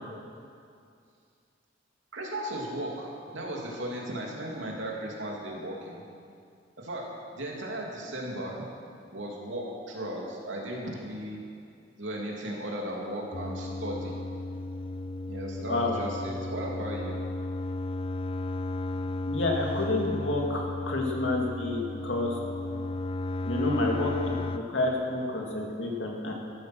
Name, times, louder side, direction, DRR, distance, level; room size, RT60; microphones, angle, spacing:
voice 1, 2.1-6.0 6.8-8.6 9.1-11.4 12.0-14.1 15.3-17.1, right 1 dB, 90° right, -2 dB, 3.0 m, -36 dB
sound 1, 13.3-24.6, left 2 dB, 30° left, 0.4 m, -34 dB
voice 2, 19.3-22.4 23.4-24.1 24.5-26.3, left 2 dB, 80° left, 0 dB, 2.2 m, -29 dB
14.0 x 13.0 x 6.2 m, 2.4 s
head